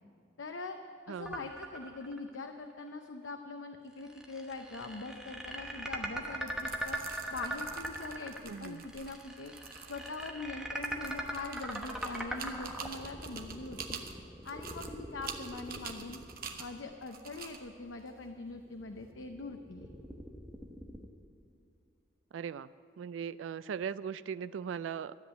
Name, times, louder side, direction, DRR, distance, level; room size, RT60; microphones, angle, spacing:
voice 1, 0.4-0.8 1.1-7.0 7.3-9.5 9.9-14.0 14.4-16.2 16.6-19.9, left 3 dB, 85° left, 5 dB, 0.7 m, -43 dB
voice 2, 1.1-1.4 8.5-8.8 22.3-22.7 23.0-25.2, right 7 dB, 90° right, 15 dB, 0.3 m, -39 dB
sound 1, 1.3-2.3 2.7-2.8 4.0-17.0 18.3-21.1, right 1 dB, 5° right, 0.9 m, -41 dB
sound 2, 6.3-19.1, right 6 dB, 50° right, 1.0 m, -48 dB
13.0 x 8.2 x 9.4 m, 2.5 s
head